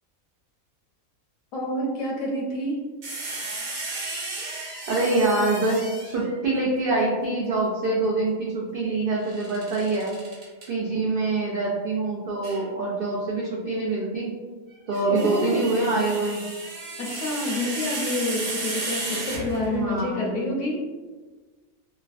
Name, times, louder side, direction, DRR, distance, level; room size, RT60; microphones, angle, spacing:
voice 1, 1.5-2.8 15.1-15.9 17.0-20.8, left 1 dB, 70° left, -3 dB, 1.0 m, -28 dB
sound 1, 3.0-6.3 9.2-10.7 12.4-12.6 14.7-19.9, right 2 dB, 70° right, 1.3 m, -34 dB
voice 2, 4.9-10.1 10.7-14.3 14.9-16.4 19.7-20.6, right 2 dB, 85° right, -4 dB, 0.4 m, -25 dB
3.2 x 2.2 x 2.4 m, 1.4 s
omnidirectional pair, 1.5 m